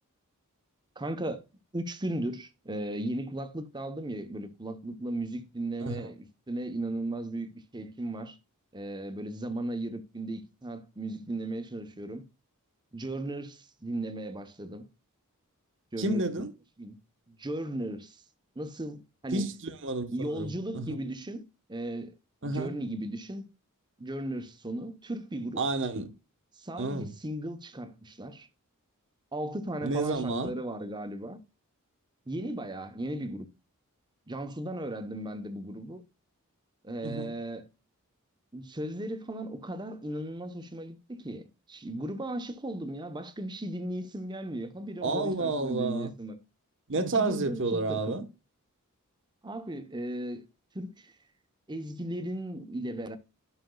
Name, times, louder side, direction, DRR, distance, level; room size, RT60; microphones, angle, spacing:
voice 1, 1.0-1.4 1.7-8.4 8.7-12.2 12.9-14.9 15.9-16.3 16.8-17.0 17.3-18.2 18.6-19.5 20.1-21.4 21.7-22.1 22.4-23.5 24.0-25.6 26.6-28.5 29.3-31.4 32.3-33.5 34.3-36.0 36.8-37.7 38.5-46.4 46.9-48.2 49.4-50.5 50.7-51.1 51.7-53.2, right 1 dB, 20° right, 0.9 m, -36 dB
voice 2, 16.0-16.5 19.3-20.9 22.4-22.8 25.6-26.1 26.8-27.1 29.8-30.5 37.0-37.3 45.0-46.1 46.9-48.3, right 3 dB, 55° right, 1.2 m, -30 dB
11.5 x 6.1 x 2.3 m
head